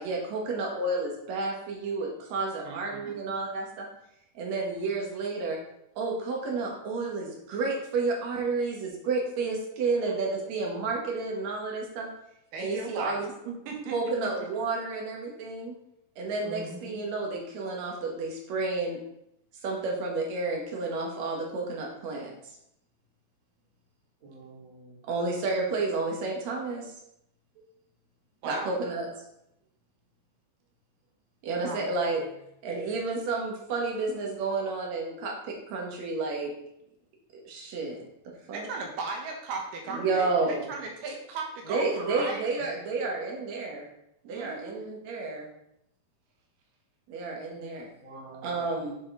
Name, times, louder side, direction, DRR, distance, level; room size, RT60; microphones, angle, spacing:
voice 1, 0.0-3.9 4.3-5.6 6.0-12.1 12.6-13.3 13.9-15.8 16.2-19.0 19.6-22.3 25.1-26.9 28.4-29.2 31.4-32.2 32.6-36.5 37.5-38.7 39.9-40.7 41.7-43.9 44.2-45.5 47.1-47.9 48.4-49.0, right 3 dB, 55° right, -1 dB, 2.5 m, -31 dB
voice 2, 2.6-3.1 12.5-13.2 13.5-14.1 28.4-28.7 31.6-31.9 38.5-42.4 44.3-44.8, right 3 dB, 85° right, 1 dB, 3.2 m, -36 dB
voice 3, 16.4-17.0 24.2-25.0 48.0-48.8, right 1 dB, 25° right, -5 dB, 2.2 m, -44 dB
7.0 x 6.8 x 4.0 m, 0.77 s
omnidirectional pair, 4.4 m